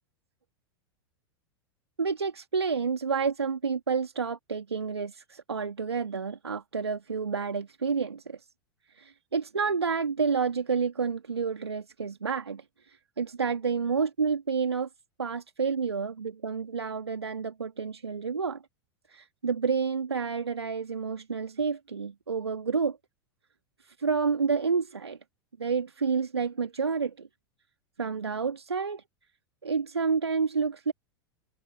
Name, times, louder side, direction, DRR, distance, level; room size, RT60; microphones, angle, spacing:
voice 1, 2.0-8.5 8.9-14.9 15.2-18.6 19.1-23.0 23.8-25.2 25.6-27.3 28.0-29.0 29.6-30.9, right 5 dB, 85° right, 1.7 m, -29 dB
figure-of-eight pair, 90°, 13 cm